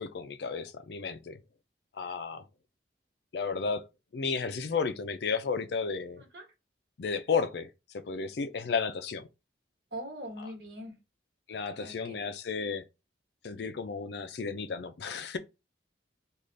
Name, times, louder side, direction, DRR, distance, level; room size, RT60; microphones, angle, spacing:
voice 1, 0.0-1.4 2.0-2.4 3.3-3.8 4.1-6.2 7.0-7.7 8.1-9.3 10.4-10.5 11.5-12.8 13.4-15.4, left 5 dB, 60° left, 0.4 m, -33 dB
voice 2, 9.9-10.9 11.8-12.2, equal, 60° right, 1.3 m, -42 dB
3.8 x 2.4 x 3.2 m
head